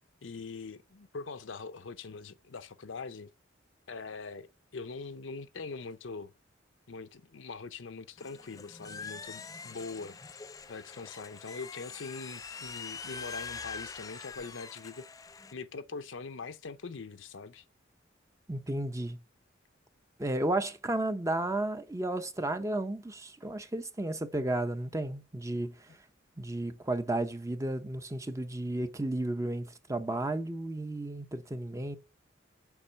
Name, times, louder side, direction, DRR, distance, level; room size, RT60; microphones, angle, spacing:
voice 1, 0.2-3.3 3.9-4.5 4.7-6.3 6.9-10.2 10.7-15.1 15.5-17.6, left 4 dB, 80° left, 0.7 m, -42 dB
sound 1, 8.2-15.5, left 5 dB, 20° left, 0.3 m, -44 dB
voice 2, 18.5-19.2 20.2-25.7 26.4-32.0, right 1 dB, 15° right, 0.7 m, -33 dB
7.1 x 5.3 x 6.5 m
head